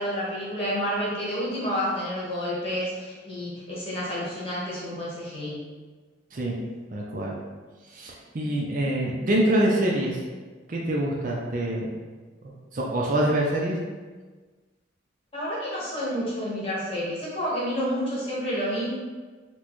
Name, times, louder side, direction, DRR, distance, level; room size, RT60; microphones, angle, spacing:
voice 1, 0.0-5.6 15.3-18.9, equal, 30° left, -7 dB, 1.0 m, -29 dB
voice 2, 6.9-7.3 7.9-10.2 10.7-11.9 12.7-13.8, right 1 dB, 40° right, -3 dB, 0.4 m, -25 dB
4.3 x 2.2 x 2.9 m, 1.4 s
head